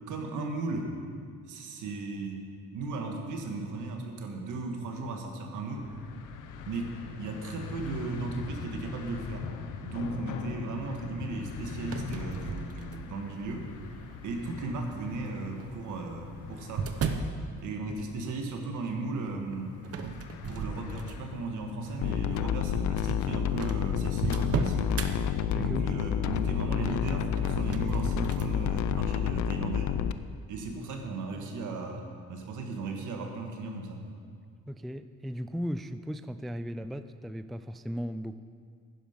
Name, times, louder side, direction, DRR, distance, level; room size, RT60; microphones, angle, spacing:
voice 1, 0.1-0.9 1.4-5.9 6.7-9.5 9.8-13.7 14.2-16.9 17.6-19.8 20.5-25.1 25.5-29.9 30.5-34.0, right 3 dB, 80° right, 3 dB, 1.7 m, -36 dB
sound 1, 5.8-23.1, left 6 dB, 90° left, 0.9 m, -43 dB
sound 2, 11.8-13.3 13.9-14.4 15.4-17.4 19.8-21.4 21.9-22.1 22.9-23.0 23.2-23.3 23.6-25.1 27.2-28.5, right 5 dB, 50° right, 1.0 m, -35 dB
sound 3, 22.0-30.1, left 9 dB, 70° left, 0.5 m, -29 dB
voice 2, 25.5-26.0 34.7-38.4, equal, ahead, 12 dB, 0.3 m, -36 dB
11.5 x 10.5 x 5.2 m, 2.1 s
cardioid pair, 90°, 30 cm